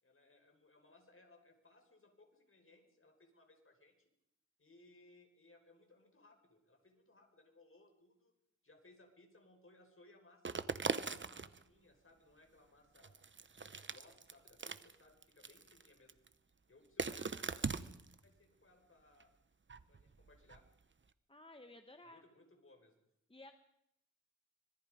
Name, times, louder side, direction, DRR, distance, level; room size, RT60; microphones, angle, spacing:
voice 1, 0.0-4.1 4.6-8.3 8.6-10.6 10.9-13.2 13.6-16.2 16.7-17.5 18.2-19.3 19.9-20.6 22.0-23.0, left 2 dB, 45° left, 4 dB, 5.3 m, -65 dB
sound 1, 10.4-11.6 13.0-15.0 15.2-16.3 17.0-18.2 19.2-19.3 19.7-20.7, right 4 dB, 40° right, 1.0 m, -41 dB
voice 2, 21.3-22.2 23.3-23.5, left 2 dB, 20° left, 7 dB, 1.4 m, -55 dB
25.5 x 21.5 x 5.2 m, 0.79 s
wide cardioid pair, 70°, 30 cm